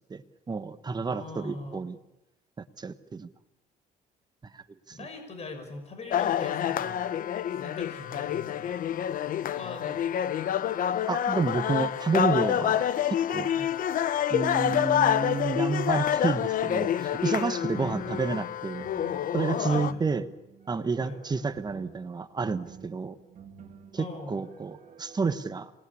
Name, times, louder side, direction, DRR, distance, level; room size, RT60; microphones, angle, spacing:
voice 1, 0.1-2.0 2.8-3.3 4.5-5.1 11.1-13.5 14.3-18.9 19.3-20.3 20.7-23.2 23.9-25.7, right 4 dB, 25° right, 10 dB, 1.3 m, -30 dB
voice 2, 1.1-1.9 4.9-7.0 7.6-8.8 9.5-10.1 13.6-13.7 17.8-18.1 19.7-20.0 21.0-21.2 23.9-24.4, left 3 dB, 40° left, 6 dB, 6.2 m, -41 dB
sound 1, 6.1-19.9, left 10 dB, 55° left, 0.9 m, -27 dB
sound 2, 17.8-25.2, right 7 dB, 45° right, 2.6 m, -51 dB
27.0 x 20.0 x 8.6 m, 0.98 s
cardioid pair, 110°, 17 cm